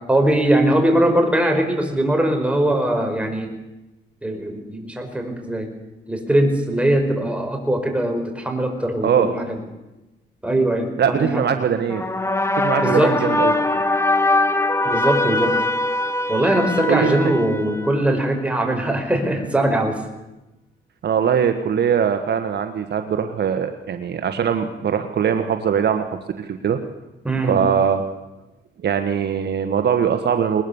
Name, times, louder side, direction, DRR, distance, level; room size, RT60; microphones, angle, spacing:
voice 1, 0.0-3.5 4.2-5.7 6.1-9.6 10.4-11.4 12.8-13.1 14.9-15.5 16.3-20.0 27.3-27.6, right 1 dB, 5° right, 3 dB, 5.2 m, -21 dB
voice 2, 11.0-12.0 12.6-13.5 16.9-17.3 21.0-26.1 26.4-26.8 27.4-28.0 28.8-30.6, right 7 dB, 55° right, 7 dB, 1.5 m, -21 dB
sound 1, 11.9-18.3, left 2 dB, 15° left, 1.5 m, -22 dB
20.5 x 20.5 x 7.2 m, 1.0 s
cardioid pair, 90°, 20 cm